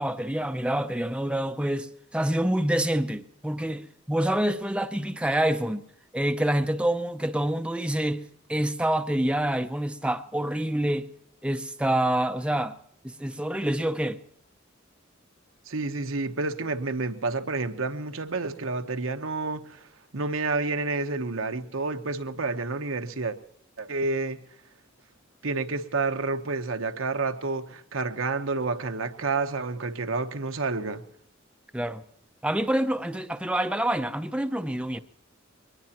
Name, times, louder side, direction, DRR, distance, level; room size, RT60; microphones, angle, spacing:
voice 1, 0.0-5.8 6.1-8.2 8.5-11.1 11.4-12.7 13.0-14.2 31.7-32.0 32.4-35.0, right 1 dB, 5° right, 0.5 m, -27 dB
voice 2, 15.7-19.9 20.1-23.4 23.8-24.4 25.4-31.0, right 3 dB, 85° right, 1.0 m, -29 dB
22.0 x 20.0 x 2.9 m
head